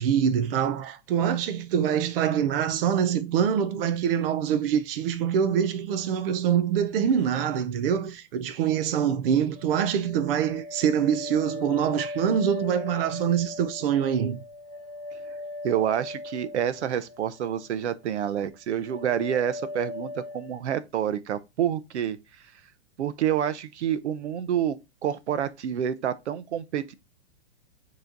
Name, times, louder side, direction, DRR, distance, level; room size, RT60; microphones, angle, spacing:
voice 1, 0.0-14.4, right 8 dB, 55° right, 0.7 m, -25 dB
sound 1, 9.6-17.7 18.0-18.5 18.9-20.6, left 2 dB, 20° right, 1.6 m, -39 dB
voice 2, 15.6-22.2 23.0-24.8 25.0-26.9, right 9 dB, 80° right, 0.9 m, -28 dB
9.5 x 3.2 x 3.9 m
hypercardioid pair, 155°, 34 cm